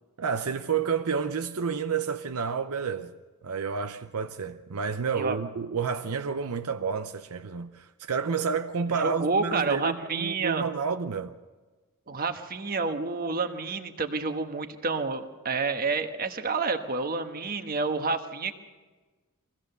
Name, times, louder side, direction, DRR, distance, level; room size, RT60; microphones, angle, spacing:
voice 1, 0.2-3.1 3.4-11.4, right 6 dB, 80° right, 0.7 m, -30 dB
voice 2, 9.0-10.6 12.1-18.6, right 4 dB, 40° right, 1.3 m, -29 dB
23.5 x 16.0 x 6.8 m
head